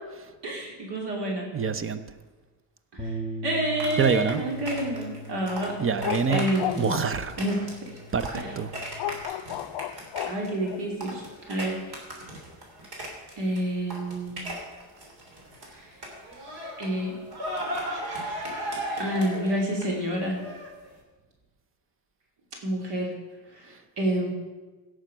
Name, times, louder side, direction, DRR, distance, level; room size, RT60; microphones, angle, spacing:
voice 1, 0.4-1.5 2.9-3.1 3.4-5.8 6.3-6.9 7.4-7.6 8.3-8.5 10.3-11.2 11.5-11.8 13.4-14.4 15.7-15.8 16.8-17.2 19.0-20.4 22.6-23.1 24.0-24.3, right 1 dB, 75° right, 0 dB, 2.8 m, -28 dB
voice 2, 1.5-2.0 4.0-4.4 5.8-6.4 6.8-7.4 8.1-8.3 8.6-8.7, right 6 dB, 30° right, 12 dB, 0.7 m, -25 dB
Bass guitar, 3.0-9.2, equal, 15° right, 1.3 m, -40 dB
sound 1, 3.8-13.6 13.9-15.7 16.0-20.9, right 1 dB, 60° right, 3.3 m, -37 dB
sound 2, 6.0-7.3 9.0-10.8, left 13 dB, 90° left, 0.5 m, -33 dB
17.0 x 6.5 x 5.6 m, 1.3 s
cardioid pair, 130°, 42 cm